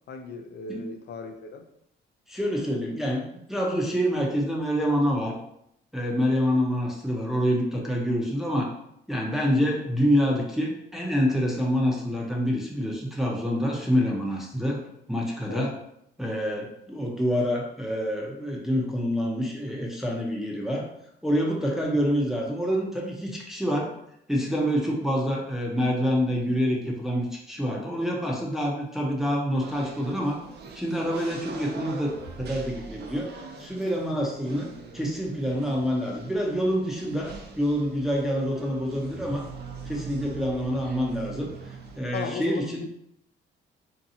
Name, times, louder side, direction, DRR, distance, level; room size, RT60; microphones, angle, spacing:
voice 1, 0.1-1.6 15.5-15.7 42.1-42.9, left 5 dB, 60° left, 5 dB, 0.5 m, -36 dB
voice 2, 2.3-5.4 5.9-8.7 9.1-14.8 15.1-15.8 16.2-20.9 21.2-24.0 24.3-30.4 30.8-32.1 32.4-33.3 33.6-34.7 34.9-39.5 39.9-41.5 42.0-42.8, equal, ahead, -3 dB, 0.6 m, -26 dB
sound 1, 29.6-42.0, right 5 dB, 55° right, 0.5 m, -42 dB
2.7 x 2.3 x 2.6 m, 0.76 s
cardioid pair, 90°, 20 cm